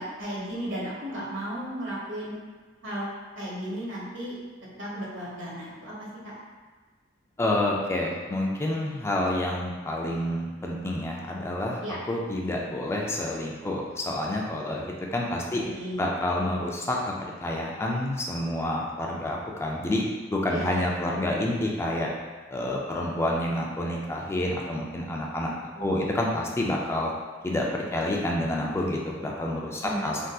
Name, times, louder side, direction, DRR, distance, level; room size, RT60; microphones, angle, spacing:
voice 1, 0.0-2.4 2.8-3.1 3.4-4.3 4.8-6.3 11.8-12.0 15.6-16.0 20.5-20.7 25.8-26.1 29.8-30.1, right 1 dB, 90° right, -6 dB, 1.0 m, -34 dB
voice 2, 7.4-15.6 16.0-17.1 17.4-20.0 20.3-22.1 22.5-27.1 27.4-30.2, left 1 dB, 15° left, -2 dB, 0.3 m, -28 dB
3.5 x 2.6 x 2.3 m, 1.4 s
head